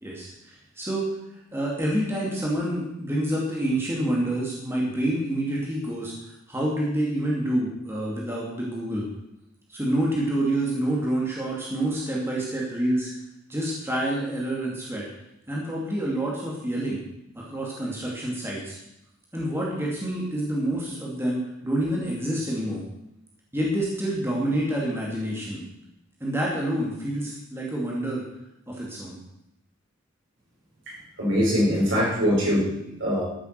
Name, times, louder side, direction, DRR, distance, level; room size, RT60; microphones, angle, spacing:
voice 1, 0.0-1.1 1.5-9.1 9.7-13.1 13.5-15.1 15.5-17.0 17.3-18.8 19.3-22.9 23.5-25.6 26.2-28.2 28.7-29.2, right 1 dB, 10° right, -4 dB, 2.5 m, -27 dB
voice 2, 31.2-33.3, equal, 65° right, -4 dB, 5.8 m, -23 dB
13.0 x 8.1 x 6.7 m, 0.83 s
head